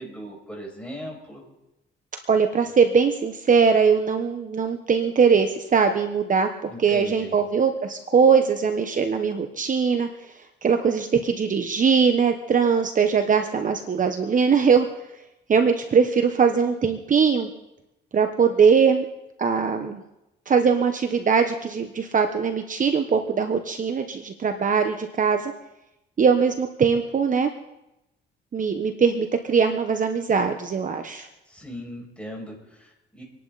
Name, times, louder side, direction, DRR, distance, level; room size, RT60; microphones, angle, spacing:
voice 1, 0.0-1.4 6.6-7.3 31.5-33.2, equal, 5° left, -1 dB, 6.2 m, -38 dB
voice 2, 2.3-10.1 10.6-14.9 15.5-17.5 18.1-19.0 19.4-20.0 20.5-25.5 26.2-27.5 28.5-31.3, right 6 dB, 40° right, 6 dB, 1.2 m, -21 dB
26.5 x 11.0 x 4.1 m, 0.90 s
cardioid pair, 90°, 20 cm